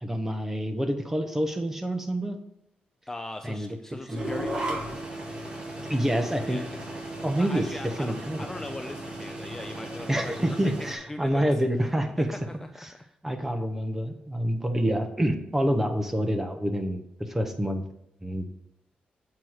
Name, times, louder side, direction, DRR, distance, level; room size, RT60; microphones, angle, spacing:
voice 1, 0.0-2.4 3.4-3.7 4.1-4.4 5.9-6.6 7.2-7.7 8.0-8.5 10.1-12.3 13.2-17.8 18.2-18.4, equal, 10° right, 6 dB, 1.0 m, -27 dB
voice 2, 3.1-5.0 6.5-6.8 7.1-11.5 12.5-12.7, left 2 dB, 15° left, 6 dB, 0.5 m, -40 dB
sound 1, 4.1-10.9, right 1 dB, 30° right, 2.1 m, -36 dB
7.6 x 4.6 x 6.4 m, 0.80 s
cardioid pair, 100°, 3 cm